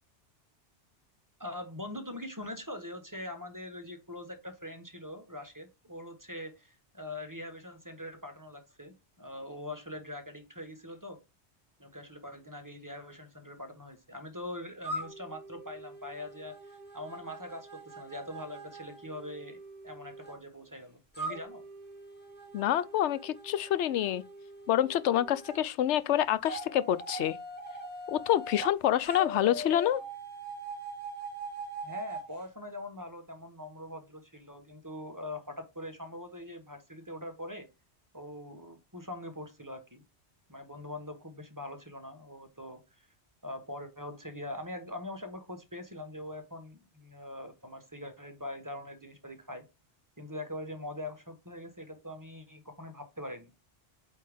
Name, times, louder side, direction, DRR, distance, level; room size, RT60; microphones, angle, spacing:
voice 1, 1.4-11.2 11.8-19.6 19.8-21.6 31.8-37.7 38.1-40.0 40.5-43.1 43.4-49.6 50.2-53.5, left 1 dB, 20° right, 1.1 m, -43 dB
sound 1, 14.8-20.4 21.1-25.6 26.5-28.7 29.1-32.3, right 1 dB, 10° left, 1.9 m, -42 dB
voice 2, 22.5-24.2 24.7-27.4 28.1-30.0, left 11 dB, 90° left, 0.9 m, -27 dB
8.5 x 3.5 x 3.5 m
omnidirectional pair, 1.2 m